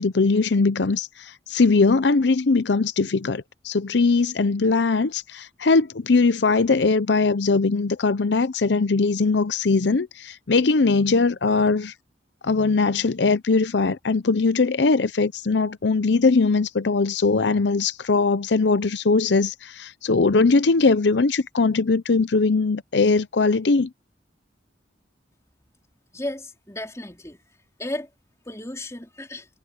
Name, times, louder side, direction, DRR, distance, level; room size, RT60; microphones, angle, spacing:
voice 1, 0.0-11.9 12.4-23.9, left 4 dB, 80° left, 0.7 m, -20 dB
voice 2, 26.1-27.4 27.8-28.1 28.5-29.5, left 1 dB, 15° left, 4.2 m, -34 dB
head